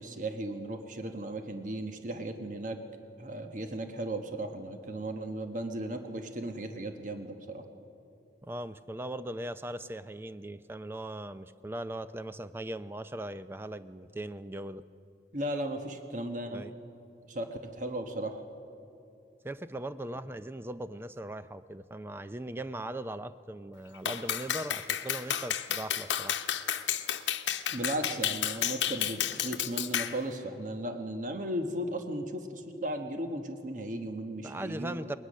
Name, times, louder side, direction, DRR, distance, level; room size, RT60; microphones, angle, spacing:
voice 1, 0.0-2.8 3.2-7.6 15.3-16.7 17.3-18.4 27.7-35.2, right 1 dB, 45° right, 6 dB, 1.1 m, -36 dB
voice 2, 8.4-14.8 16.5-16.7 19.4-26.4 34.4-35.2, right 1 dB, 10° right, 13 dB, 0.4 m, -39 dB
Clapping, 24.1-30.2, left 10 dB, 85° left, 0.9 m, -31 dB
20.0 x 20.0 x 6.4 m, 2.7 s
head